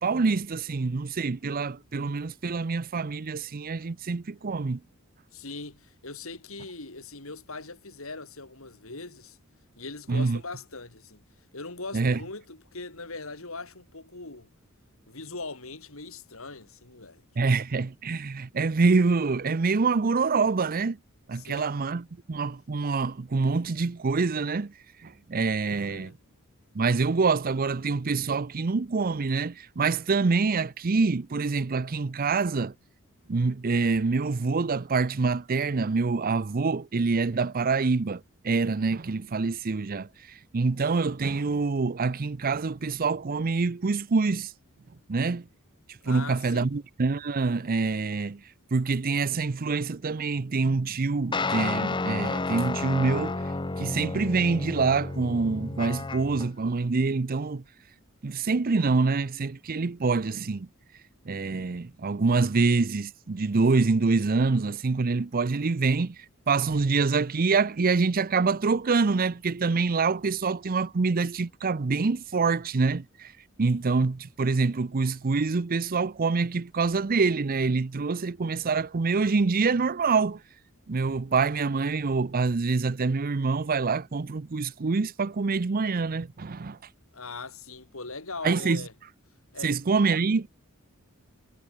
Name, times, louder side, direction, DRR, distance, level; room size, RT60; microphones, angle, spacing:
voice 1, 0.0-4.8 10.1-10.4 11.9-12.2 17.4-21.0 21.3-24.7 25.0-26.1 26.7-32.7 33.3-44.5 45.1-45.5 45.9-48.4 48.7-53.4 53.8-57.6 58.2-60.7 61.3-73.3 73.6-80.4 80.9-86.8 88.4-88.8 89.6-90.5, right 4 dB, 40° right, 0.6 m, -26 dB
voice 2, 5.3-9.4 9.8-11.2 11.5-14.5 15.1-17.2 17.5-17.6 21.4-21.8 25.7-26.1 46.0-46.7 87.1-88.9 89.5-89.7, left 3 dB, 65° left, 3.7 m, -40 dB
sound 1, 51.3-56.5, left 3 dB, 20° left, 0.7 m, -31 dB
head